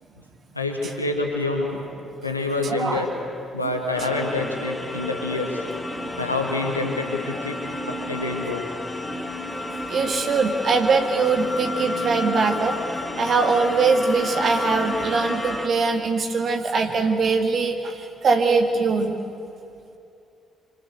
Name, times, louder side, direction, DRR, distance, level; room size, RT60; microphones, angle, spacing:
voice 1, 0.5-1.8 2.2-3.1 3.5-5.6 6.2-8.7, left 2 dB, 90° left, 1 dB, 2.4 m, -27 dB
voice 2, 2.6-3.0 9.9-12.8 13.2-19.2, right 4 dB, 50° right, 4 dB, 2.0 m, -22 dB
sound 1, 3.9-15.7, left 1 dB, 15° left, 3.2 m, -31 dB
27.0 x 26.5 x 8.1 m, 2.6 s
figure-of-eight pair, 40°, 0 cm